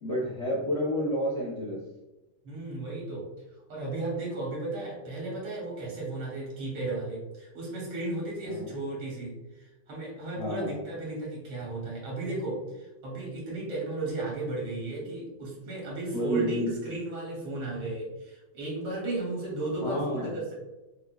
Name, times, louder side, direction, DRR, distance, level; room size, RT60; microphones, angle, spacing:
voice 1, 0.0-1.8 8.5-8.7 10.4-10.8 15.0-15.2 16.1-16.7 19.8-20.4, equal, 55° left, -6 dB, 0.7 m, -30 dB
voice 2, 2.4-3.3 3.7-20.5, right 2 dB, 85° right, -4 dB, 2.1 m, -35 dB
4.9 x 2.2 x 2.3 m, 1.0 s
omnidirectional pair, 2.2 m